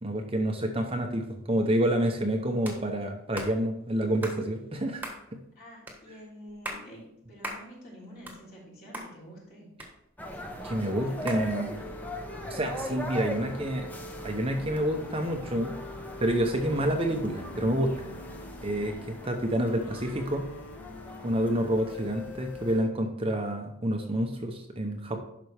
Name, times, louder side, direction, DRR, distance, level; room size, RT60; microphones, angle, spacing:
voice 1, 0.0-5.0 5.3-5.4 10.6-11.7 12.4-13.8 14.2-15.8 16.2-17.9 18.6-20.5 21.2-25.2, right 1 dB, 25° right, 4 dB, 0.7 m, -28 dB
sound 1, 2.6-2.8 3.3-3.5 4.2-4.4 5.0-5.2 5.9-6.0 6.5-6.8 7.4-7.6 8.0-8.7 8.9-9.1 9.8-10.4 11.3-11.4, right 1 dB, 10° right, 1.4 m, -38 dB
voice 2, 5.6-9.7 10.4-11.9 19.2-19.5, equal, 45° left, -5 dB, 3.4 m, -48 dB
sound 2, 10.2-22.8, equal, 10° left, 0.8 m, -41 dB
sound 3, 11.0-22.9, left 3 dB, 85° left, 0.6 m, -46 dB
10.5 x 6.0 x 3.4 m, 0.78 s
head